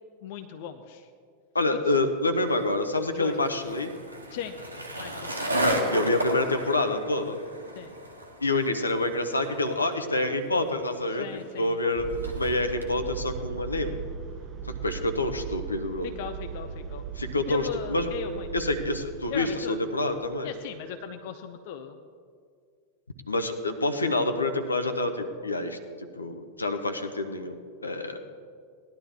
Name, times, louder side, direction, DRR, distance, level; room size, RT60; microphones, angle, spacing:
voice 1, 0.2-1.1 3.1-3.5 4.3-4.6 5.0-6.1 7.8-7.9 11.2-11.8 16.0-17.0 17.5-18.5 19.3-19.8 20.4-22.0, left 8 dB, 50° left, 7 dB, 0.7 m, -38 dB
voice 2, 1.5-3.9 5.9-7.4 8.4-12.1 12.3-14.0 14.8-16.1 17.2-18.1 18.5-20.5 23.3-27.6 27.8-28.2, left 2 dB, 80° left, 7 dB, 0.9 m, -27 dB
Skateboard, 2.4-12.9, right 1 dB, 85° right, 1.5 m, -34 dB
sound 1, 11.9-20.3, right 6 dB, 30° right, 0.9 m, -38 dB
17.5 x 11.5 x 3.5 m, 2.1 s
figure-of-eight pair, 90°, 0 cm